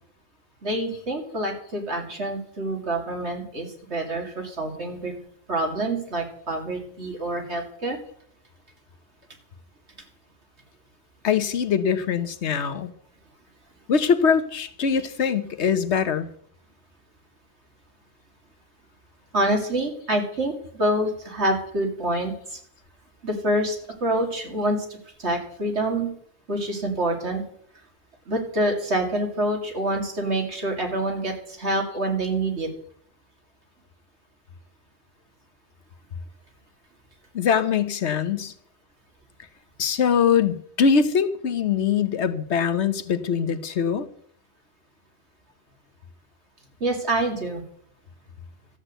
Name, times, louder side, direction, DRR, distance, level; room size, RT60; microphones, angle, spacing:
voice 1, 0.6-5.1 5.5-8.0 19.3-22.6 23.2-23.7 24.0-26.1 26.5-27.4 28.3-32.7 46.8-47.6, right 1 dB, 85° right, 2 dB, 3.0 m, -26 dB
voice 2, 11.2-12.9 13.9-16.3 37.3-38.5 39.8-44.1, left 6 dB, 85° left, 11 dB, 1.3 m, -22 dB
13.0 x 8.2 x 7.8 m, 0.63 s
omnidirectional pair, 1.1 m